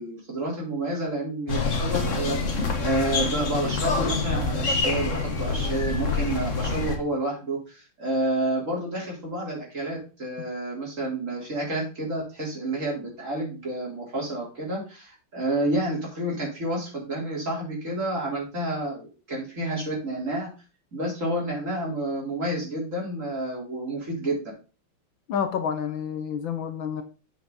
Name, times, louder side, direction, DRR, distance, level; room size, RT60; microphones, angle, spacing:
voice 1, 0.0-20.5 20.9-24.5, right 1 dB, 35° right, 4.2 m, -29 dB
sound 1, 1.5-7.0, left 3 dB, 40° left, 1.5 m, -26 dB
voice 2, 25.3-27.0, left 7 dB, 70° left, 1.5 m, -29 dB
8.3 x 6.5 x 4.0 m
omnidirectional pair, 2.3 m